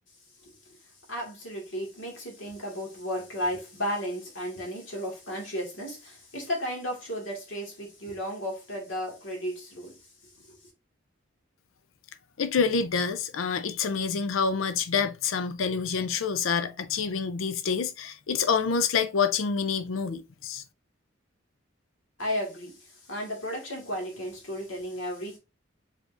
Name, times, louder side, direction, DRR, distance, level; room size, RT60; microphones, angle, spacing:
voice 1, 1.1-10.0 10.4-10.5 22.2-25.4, equal, 75° left, 1.9 m, -34 dB
voice 2, 12.4-20.6, left 5 dB, 90° left, 0.5 m, -27 dB
5.0 x 3.9 x 2.5 m
head